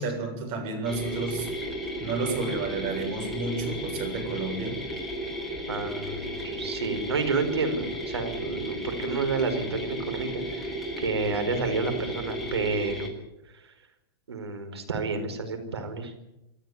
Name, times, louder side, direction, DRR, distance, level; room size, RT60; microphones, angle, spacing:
voice 1, 0.0-1.5 2.0-4.9, right 3 dB, 50° right, 4 dB, 7.7 m, -31 dB
sound 1, 0.9-13.1, equal, ahead, 6.9 m, -34 dB
voice 2, 5.7-13.1 14.3-16.1, right 4 dB, 85° right, 6 dB, 4.8 m, -30 dB
27.0 x 13.5 x 9.6 m, 0.90 s
hypercardioid pair, 105°, 13 cm